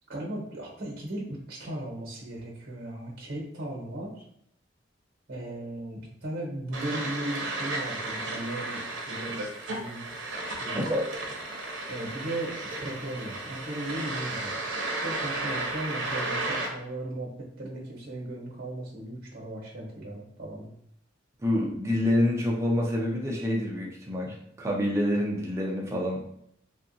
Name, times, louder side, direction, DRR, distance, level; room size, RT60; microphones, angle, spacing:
voice 1, 0.1-4.2 5.3-9.4 9.7-10.0 10.4-10.9 11.9-14.6 15.0-20.7, right 1 dB, 50° right, -3 dB, 0.9 m, -37 dB
sound 1, 6.7-16.7, right 2 dB, 80° right, 0.6 m, -34 dB
voice 2, 21.4-26.2, left 1 dB, 15° right, -2 dB, 0.4 m, -27 dB
2.8 x 2.4 x 2.6 m, 0.71 s
head